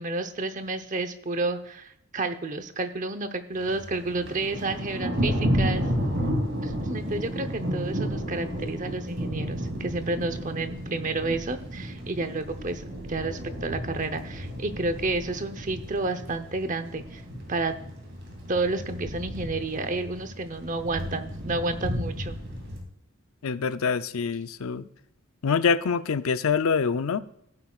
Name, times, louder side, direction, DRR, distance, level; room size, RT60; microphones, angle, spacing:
voice 1, 0.0-5.8 6.6-17.2 17.5-17.7 18.5-22.4, right 3 dB, 35° right, 10 dB, 0.8 m, -30 dB
Thunder, 3.6-22.8, equal, 55° right, 2.8 m, -32 dB
voice 2, 23.4-24.9 25.4-27.2, left 5 dB, 80° left, 13 dB, 0.5 m, -25 dB
15.5 x 8.3 x 2.4 m, 0.74 s
head